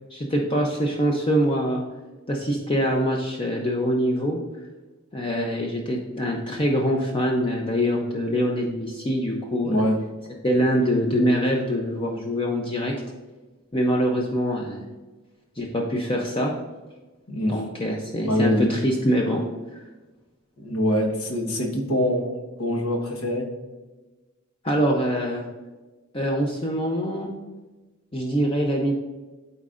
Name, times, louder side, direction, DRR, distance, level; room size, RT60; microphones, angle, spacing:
voice 1, 0.1-1.8 2.3-4.4 5.1-9.8 10.4-12.9 13.7-14.8 15.6-16.5 17.5-19.4 19.7-19.8 24.6-25.4 26.1-27.3 28.1-28.9, equal, 25° left, 0 dB, 0.6 m, -24 dB
voice 2, 9.6-10.0 17.3-17.6 18.2-18.7 20.6-22.3 22.6-23.5, equal, 90° left, 2 dB, 1.3 m, -24 dB
12.0 x 4.2 x 2.5 m, 1.2 s
head